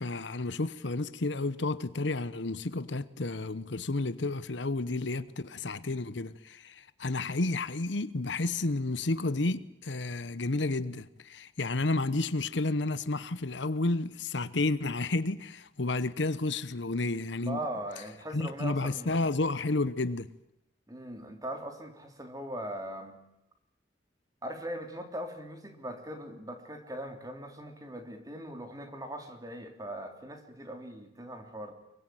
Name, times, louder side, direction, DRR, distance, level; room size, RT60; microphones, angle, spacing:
voice 1, 0.0-17.6 18.3-20.3, left 2 dB, 70° left, 1.0 m, -31 dB
voice 2, 17.4-19.1 20.9-23.2 24.4-31.7, right 1 dB, 20° right, 3.2 m, -40 dB
25.0 x 23.0 x 9.2 m
head